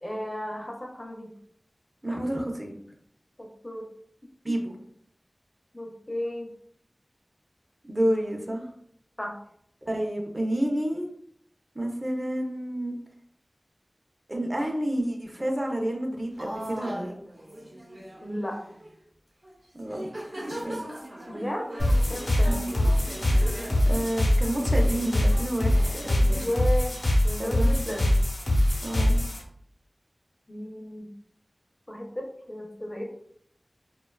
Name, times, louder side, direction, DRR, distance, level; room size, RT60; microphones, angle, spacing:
voice 1, 0.0-1.3 3.4-3.9 5.7-6.5 9.2-9.4 18.2-18.6 21.3-21.7 22.1-22.6 26.4-27.0 27.2-28.2 30.5-31.1 31.9-33.1, left 1 dB, 30° left, 1 dB, 0.5 m, -34 dB
voice 2, 2.0-2.8 4.4-4.8 7.9-8.6 9.9-11.0 11.7-13.0 14.3-17.1 19.7-20.1 20.6-20.9 22.4-22.7 23.9-26.5 27.4-27.7 28.8-29.2, right 1 dB, 35° right, 1 dB, 0.5 m, -29 dB
sound 1, 16.4-18.9 19.4-19.6 19.8-26.6, right 1 dB, 75° right, 0.9 m, -40 dB
sound 2, 21.8-29.4, left 1 dB, 75° left, 0.7 m, -23 dB
2.7 x 2.2 x 2.2 m, 0.65 s
wide cardioid pair, 45°, 0 cm